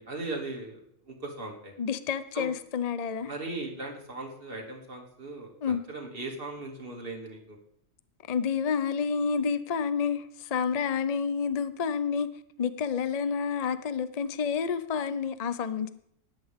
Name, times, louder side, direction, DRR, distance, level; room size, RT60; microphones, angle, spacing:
voice 1, 0.0-1.7 2.3-2.5 3.2-7.6, right 2 dB, 40° right, 2.7 m, -38 dB
voice 2, 1.8-3.3 5.6-5.8 8.3-12.3 12.6-15.9, left 6 dB, 40° left, 0.6 m, -29 dB
17.5 x 11.5 x 3.7 m
omnidirectional pair, 1.4 m